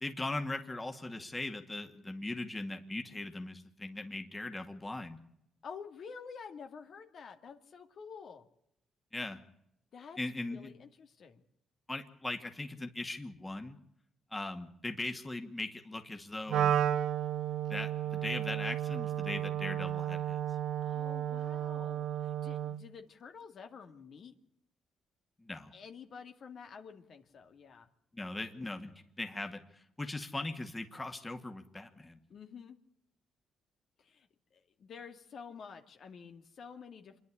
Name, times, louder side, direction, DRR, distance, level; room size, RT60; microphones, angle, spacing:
voice 1, 0.0-5.2 9.1-9.4 10.2-10.7 11.9-13.8 14.3-16.7 17.7-20.4 25.4-25.7 28.1-28.9 29.2-32.2, left 2 dB, 15° left, 5 dB, 2.2 m, -39 dB
voice 2, 5.6-8.4 9.9-11.4 20.8-24.3 25.7-27.9 32.3-32.8 34.0-37.2, left 6 dB, 60° left, 6 dB, 2.3 m, -49 dB
Wind instrument woodwind instrument, 16.5-22.9, right 11 dB, 75° right, 0.9 m, -33 dB
26.5 x 11.0 x 9.9 m, 0.77 s
cardioid pair, 90°, 0 cm